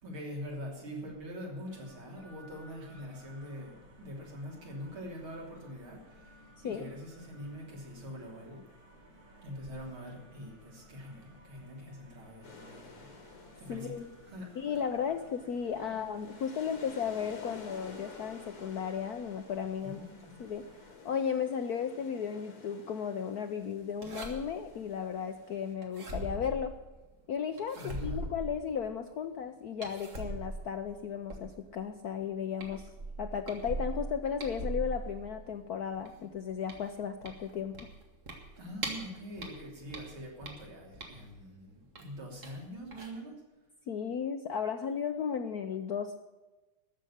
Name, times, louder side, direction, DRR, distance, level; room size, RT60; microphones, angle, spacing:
voice 1, 0.0-8.6 9.4-13.1 13.6-14.0 14.2-14.8 15.9-16.0 19.8-20.4 27.7-28.3 38.6-43.4, equal, 75° right, -1 dB, 4.0 m, -44 dB
sound 1, 1.7-20.9, equal, 55° right, 3.5 m, -57 dB
sound 2, 12.4-25.7, left 3 dB, 90° left, 3.1 m, -53 dB
voice 2, 13.7-14.1 14.6-20.0 20.4-20.6 21.0-26.7 27.3-32.9 33.2-37.8 43.9-46.1, left 7 dB, 65° left, 8 dB, 0.9 m, -35 dB
sound 3, 24.0-24.7 25.8-27.1 27.6-28.9 29.8-31.8 32.2-32.3 32.6-35.5 35.9-39.1 39.4-41.4 42.0-42.6 42.9-43.1, right 2 dB, 35° right, 2.2 m, -40 dB
14.0 x 6.5 x 9.9 m, 1.1 s
omnidirectional pair, 2.3 m